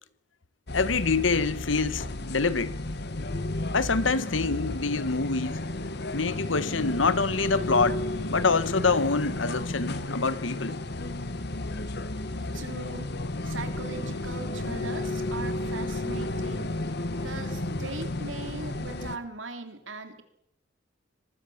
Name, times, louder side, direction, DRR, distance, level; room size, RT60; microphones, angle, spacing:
voice 1, 0.7-2.7 3.7-5.6 6.1-10.8, left 4 dB, 85° left, 1.2 m, -26 dB
sound 1, 0.7-19.2, left 2 dB, 60° left, 1.5 m, -33 dB
voice 2, 12.4-13.1 13.4-20.2, right 3 dB, 80° right, 3.3 m, -40 dB
24.5 x 19.5 x 7.2 m
head